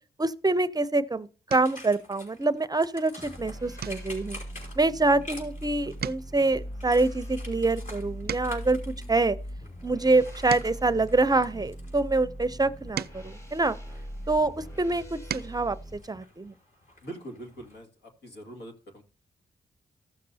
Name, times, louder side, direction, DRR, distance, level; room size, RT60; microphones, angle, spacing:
voice 1, 0.2-4.4 4.8-9.4 9.8-13.8 14.3-16.5, right 3 dB, 20° right, 0.6 m, -26 dB
sound 1, 1.5-1.9 2.4-2.7 3.0-3.2 3.8-5.6 5.9-8.8 9.4-11.9 12.5-14.4 14.9-15.7 17.0-17.1 17.4-17.6, right 9 dB, 70° right, 0.4 m, -41 dB
sound 2, 1.6-17.8, left 1 dB, 50° left, 4.3 m, -49 dB
sound 3, 3.2-16.0, equal, 15° left, 1.5 m, -40 dB
voice 2, 17.0-19.0, right 1 dB, 85° left, 2.0 m, -43 dB
15.0 x 6.6 x 2.7 m
cardioid pair, 60°, 17 cm